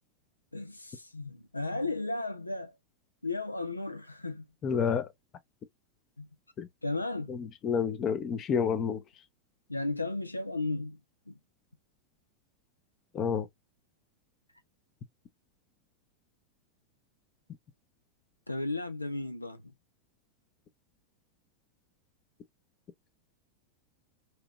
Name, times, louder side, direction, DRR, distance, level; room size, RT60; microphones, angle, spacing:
voice 1, 0.5-2.7 3.2-4.4 6.2-6.3 6.8-7.3 9.7-11.0 11.3-11.4 18.5-19.6, left 2 dB, 85° left, 0.4 m, -34 dB
voice 2, 4.6-5.1 6.6-6.7 7.3-9.0 13.1-13.5, left 6 dB, 30° left, 0.6 m, -29 dB
3.0 x 2.9 x 2.4 m
figure-of-eight pair, 90°, 0 cm